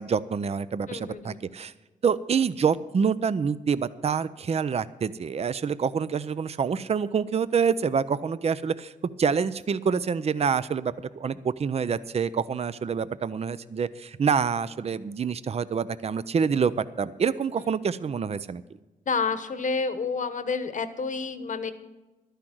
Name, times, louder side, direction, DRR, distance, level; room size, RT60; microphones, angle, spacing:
voice 1, 0.0-1.7 2.0-8.9 9.2-18.6, right 6 dB, 45° right, 15 dB, 0.5 m, -27 dB
voice 2, 0.9-1.4 17.6-17.7 19.1-21.7, left 4 dB, 60° left, 11 dB, 1.1 m, -29 dB
12.0 x 10.0 x 6.2 m, 1.2 s
cardioid pair, 80°, 15 cm